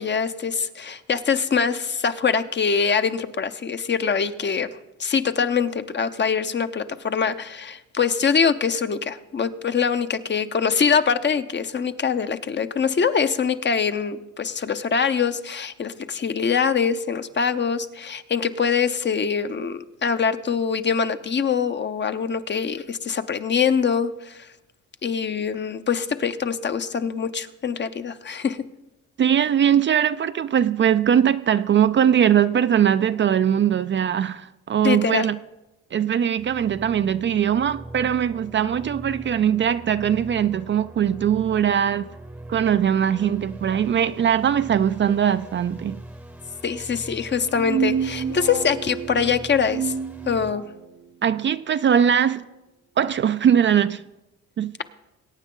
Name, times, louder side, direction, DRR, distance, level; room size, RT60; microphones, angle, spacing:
voice 1, 0.0-24.5 25.0-28.6 34.8-35.3 46.6-49.9 50.3-50.6, left 6 dB, 35° left, 0.8 m, -24 dB
voice 2, 29.2-35.4 35.9-42.1 42.5-46.0 51.2-52.4 53.0-54.0 54.6-54.7, right 9 dB, 40° right, 0.4 m, -20 dB
sound 1, 36.4-50.5, right 1 dB, 5° right, 0.8 m, -41 dB
sound 2, 47.4-50.8, right 8 dB, 65° right, 0.9 m, -29 dB
22.0 x 9.2 x 3.8 m
cardioid pair, 90°, 30 cm